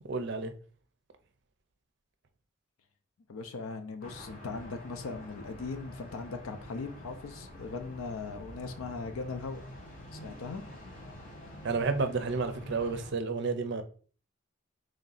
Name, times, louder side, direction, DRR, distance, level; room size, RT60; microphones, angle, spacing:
voice 1, 0.1-0.5 11.6-13.8, right 4 dB, 55° right, 0.5 m, -31 dB
voice 2, 3.3-9.6 10.1-10.6, left 4 dB, 85° left, 0.5 m, -39 dB
sound 1, 4.0-13.1, equal, 40° left, 0.9 m, -47 dB
3.2 x 2.7 x 3.9 m
head